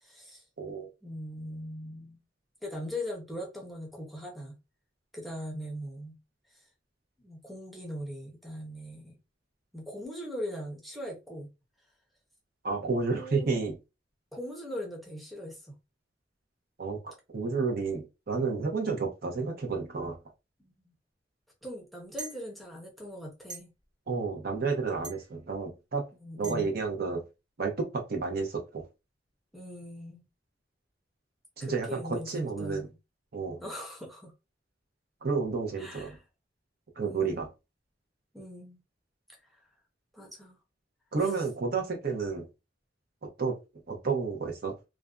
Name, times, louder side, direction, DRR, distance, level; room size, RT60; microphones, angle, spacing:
voice 1, 0.0-0.4 1.0-2.2 2.6-4.6 5.1-6.2 7.2-9.2 9.7-11.5 13.1-13.6 14.3-15.8 20.6-20.9 21.6-23.7 26.2-26.7 29.5-30.2 31.6-32.9 33.6-34.3 35.8-36.2 37.0-37.5 38.3-38.8 40.1-40.6, equal, ahead, 0.6 m, -40 dB
voice 2, 0.6-0.9 12.6-13.8 16.8-20.2 24.1-26.1 26.4-27.2 27.6-28.8 31.6-32.9 33.3-33.6 35.2-36.2 37.0-37.5 41.1-42.5 43.2-43.6 43.9-44.7, right 4 dB, 60° right, 0.7 m, -31 dB
sound 1, 22.2-22.4 23.5-23.6 25.0-25.2 26.4-26.5, right 2 dB, 75° right, 1.3 m, -40 dB
2.5 x 2.1 x 2.3 m
head